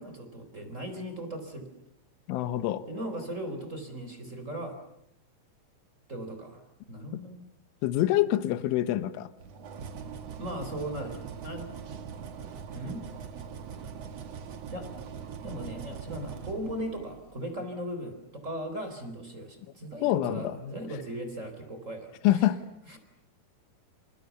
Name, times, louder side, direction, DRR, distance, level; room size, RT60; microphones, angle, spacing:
voice 1, 0.0-1.7 2.9-4.8 6.1-6.6 6.9-7.4 10.4-11.8 12.7-13.0 14.7-14.9 15.4-22.5 22.9-23.0, equal, 15° right, 6 dB, 3.7 m, -38 dB
voice 2, 2.3-2.9 7.8-9.3 20.0-20.6 22.2-22.6, left 14 dB, 75° left, 12 dB, 3.6 m, -26 dB
sound 1, 9.4-17.4, right 6 dB, 75° right, 1.5 m, -41 dB
29.5 x 28.5 x 7.1 m, 0.77 s
omnidirectional pair, 5.9 m